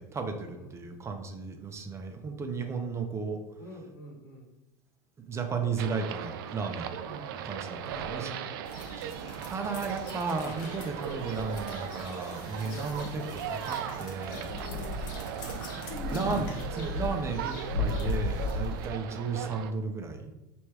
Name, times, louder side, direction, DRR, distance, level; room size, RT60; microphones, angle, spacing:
voice 1, 0.0-3.4 5.3-7.0 7.3-8.3 9.0-14.5 16.1-20.3, right 4 dB, 25° right, 5 dB, 0.6 m, -34 dB
voice 2, 3.6-4.5 7.0-7.3 7.8-8.5 14.4-15.7 18.3-18.5, left 1 dB, 90° left, -2 dB, 1.4 m, -48 dB
sound 1, 5.8-19.7, right 9 dB, 75° right, 0.4 m, -38 dB
Coin (dropping), 6.4-7.6 7.9-8.4 8.6-13.9 14.2-15.9, left 2 dB, 40° left, 1.1 m, -56 dB
sound 2, 8.6-18.9, left 3 dB, 70° left, 0.9 m, -37 dB
3.2 x 3.0 x 4.7 m, 0.94 s
supercardioid pair, 105°, 12 cm